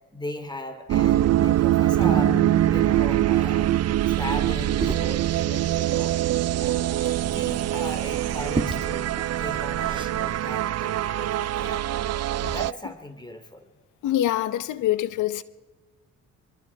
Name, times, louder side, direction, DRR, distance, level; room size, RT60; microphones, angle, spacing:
voice 1, 0.1-2.4 2.7-3.7 4.1-6.2 6.6-11.9 12.4-13.7, left 1 dB, 15° left, 3.0 m, -38 dB
sound 1, 0.9-12.7, right 13 dB, 55° right, 0.5 m, -24 dB
sound 2, 2.0-5.6, right 7 dB, 75° right, 2.1 m, -31 dB
Liquid, 3.6-10.4, right 2 dB, 15° right, 3.3 m, -36 dB
voice 2, 14.0-15.4, left 13 dB, 80° left, 1.0 m, -25 dB
24.0 x 23.0 x 4.8 m
cardioid pair, 90°, 30 cm